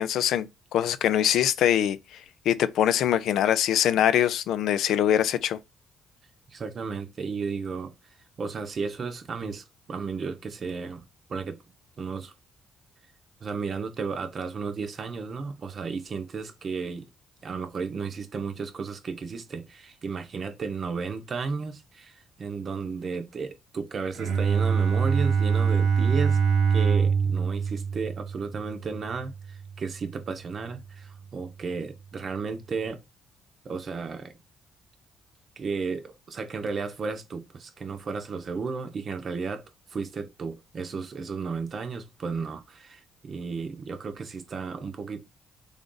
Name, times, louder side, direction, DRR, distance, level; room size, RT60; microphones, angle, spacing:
voice 1, 0.0-2.0 2.5-5.6, left 10 dB, 75° left, 0.4 m, -23 dB
voice 2, 6.5-7.9 8.4-11.6 12.0-12.3 13.4-17.1 17.4-26.4 26.7-33.0 33.6-34.3 35.6-39.6 39.9-45.2, right 5 dB, 50° right, 0.7 m, -33 dB
Bowed string instrument, 24.1-29.9, right 6 dB, 90° right, 1.2 m, -24 dB
3.5 x 2.5 x 3.8 m
cardioid pair, 80°, 0 cm